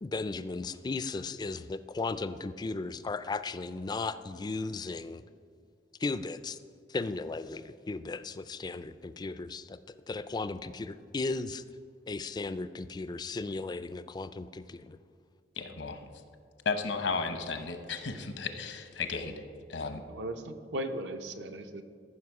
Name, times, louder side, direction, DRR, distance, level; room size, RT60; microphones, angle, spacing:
voice 1, 0.0-5.2 6.0-6.6 6.9-9.8 10.1-11.6 12.1-15.0, left 3 dB, 25° left, 13 dB, 0.3 m, -36 dB
voice 2, 15.6-16.0 16.6-19.4 19.7-20.0, left 4 dB, 80° left, 8 dB, 0.9 m, -34 dB
voice 3, 20.1-21.8, right 1 dB, 70° right, 7 dB, 0.8 m, -37 dB
14.0 x 5.8 x 4.8 m, 2.2 s
head